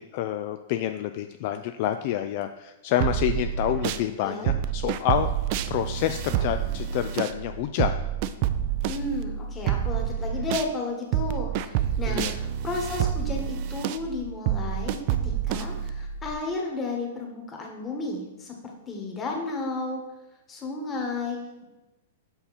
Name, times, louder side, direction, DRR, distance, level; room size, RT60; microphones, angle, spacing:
voice 1, 0.0-5.3 5.7-7.9 12.1-12.4, left 11 dB, 50° left, 8 dB, 0.3 m, -28 dB
sound 1, 3.0-4.1 4.5-10.7 11.1-16.3, right 10 dB, 50° right, 0.4 m, -28 dB
voice 2, 8.9-18.5 18.9-20.0 20.5-21.6, left 3 dB, 20° left, 0 dB, 1.5 m, -33 dB
5.7 x 5.5 x 4.2 m, 1.0 s
hypercardioid pair, 120°, 0 cm